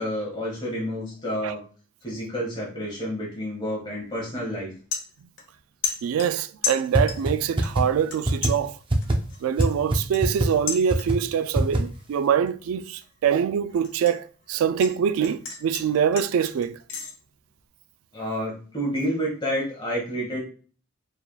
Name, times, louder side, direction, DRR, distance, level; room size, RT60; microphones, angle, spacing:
voice 1, 0.0-1.6 2.0-4.7 18.1-20.4, equal, 20° left, 1.8 m, -29 dB
sound 1, 4.0-4.2 4.6-5.6 5.8-7.3 7.6-8.2 8.4-11.3 11.7-12.1 12.5-14.9 15.2-17.1, left 6 dB, 60° left, 1.0 m, -34 dB
voice 2, 6.0-8.8 9.4-16.8, right 8 dB, 85° right, 0.3 m, -24 dB
sound 2, 6.9-7.0 7.3-7.4 7.6-7.8 8.2-8.5 8.9-9.1 9.6-9.7 9.9-10.0 10.2-10.5 10.9-11.1 11.5-11.8, right 1 dB, 25° right, 0.5 m, -21 dB
4.6 x 3.5 x 2.3 m
head